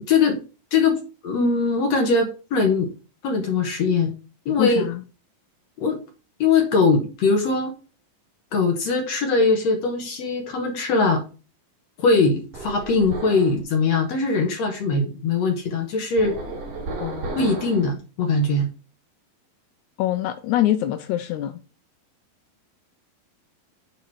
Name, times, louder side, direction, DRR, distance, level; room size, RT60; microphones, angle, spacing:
voice 1, 0.1-0.4 0.7-2.9 3.2-4.1 4.5-4.9 5.8-6.0 6.4-7.7 8.5-11.2 12.0-16.4 17.4-18.7, left 4 dB, 60° left, 2.0 m, -21 dB
voice 2, 4.6-5.0 17.0-17.4 20.0-21.5, left 13 dB, 90° left, 1.7 m, -24 dB
sound 1, 12.5-13.6 16.2-17.9, right 3 dB, 70° right, 4.2 m, -33 dB
9.5 x 4.0 x 4.6 m
omnidirectional pair, 4.1 m